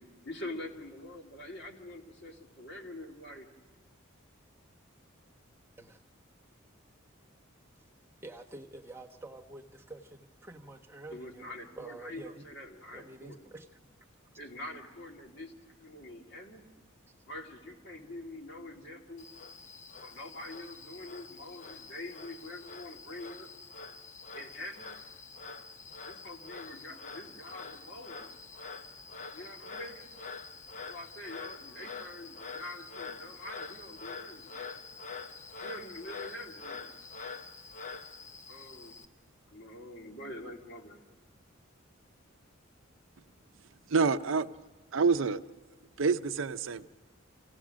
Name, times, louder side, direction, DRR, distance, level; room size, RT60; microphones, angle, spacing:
voice 1, 0.2-3.5 11.1-13.5 14.4-15.5 15.8-16.7 17.3-19.3 20.0-23.5 24.3-24.9 26.0-28.3 29.3-30.1 30.8-34.5 35.6-36.9 38.5-39.0 39.5-41.0, left 1 dB, 55° left, 2.1 m, -45 dB
voice 2, 8.2-11.4 11.8-12.5 12.9-14.0 14.8-14.9 15.9-16.3 17.0-17.3, right 2 dB, 10° right, 1.0 m, -48 dB
Frog, 19.2-39.1, left 4 dB, 35° left, 0.7 m, -46 dB
voice 3, 43.9-44.5 44.9-45.4 46.0-46.9, right 4 dB, 70° right, 0.6 m, -27 dB
27.5 x 16.5 x 6.2 m
head